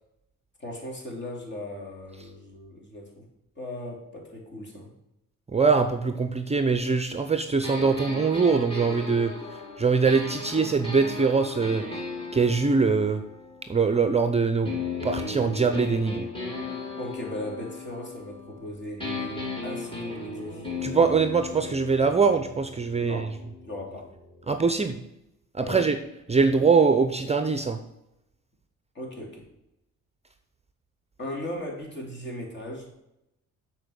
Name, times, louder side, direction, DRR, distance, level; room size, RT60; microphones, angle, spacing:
voice 1, 0.6-3.2 3.6-4.9 17.0-20.7 22.9-23.3 23.6-24.2 25.6-25.9 28.9-29.5 31.2-32.9, left 1 dB, 35° left, 0 dB, 3.1 m, -38 dB
voice 2, 5.5-11.8 12.3-13.2 13.7-14.7 15.0-16.3 20.8-23.3 24.5-25.0 25.5-26.0 26.3-27.8, right 4 dB, 20° right, 8 dB, 0.6 m, -23 dB
sound 1, 7.6-14.2 14.6-18.7 19.0-24.7, left 3 dB, 15° left, 2.9 m, -36 dB
7.6 x 4.6 x 6.5 m, 0.86 s
cardioid pair, 90°, 30 cm